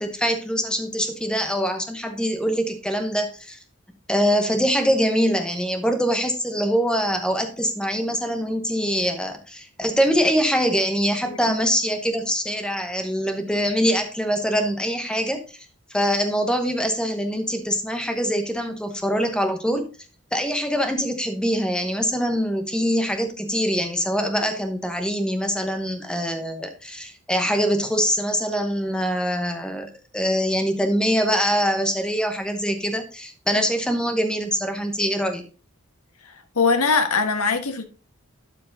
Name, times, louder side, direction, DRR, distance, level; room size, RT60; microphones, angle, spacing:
voice 1, 0.0-3.6 4.1-15.6 15.9-19.9 20.3-35.4, equal, 5° left, 6 dB, 1.0 m, -24 dB
voice 2, 36.5-37.8, left 4 dB, 85° left, 8 dB, 1.3 m, -21 dB
12.0 x 4.7 x 3.9 m, 0.36 s
head